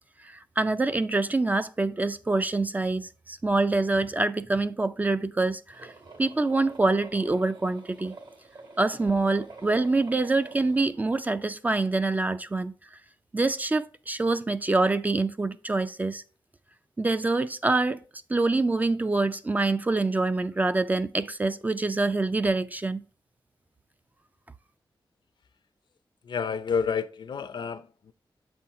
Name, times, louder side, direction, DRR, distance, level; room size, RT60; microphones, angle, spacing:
voice 1, 0.2-5.9 6.2-8.1 8.8-12.7 13.3-16.2 17.0-18.0 18.3-23.0, right 3 dB, 20° right, 0.3 m, -25 dB
sound 1, 5.7-10.8, right 3 dB, 60° right, 1.8 m, -46 dB
voice 2, 26.2-28.1, left 6 dB, 65° left, 0.5 m, -30 dB
7.6 x 4.4 x 3.6 m
wide cardioid pair, 175°, 8 cm